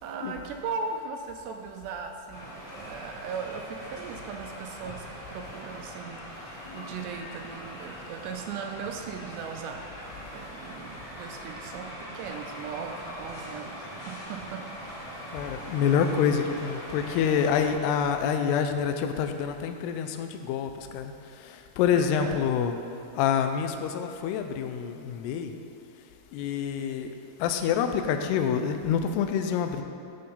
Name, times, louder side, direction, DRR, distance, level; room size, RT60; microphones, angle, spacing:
voice 1, 0.0-9.9 10.3-14.7 15.6-15.8 21.9-22.5, right 5 dB, 80° right, 4 dB, 2.5 m, -38 dB
sound 1, 2.3-17.7, equal, 25° left, 2.2 m, -41 dB
voice 2, 15.3-22.7 23.1-25.6 26.3-27.1 27.4-29.8, left 7 dB, 85° left, 6 dB, 2.4 m, -27 dB
12.0 x 6.7 x 5.5 m, 2.6 s
omnidirectional pair, 5.4 m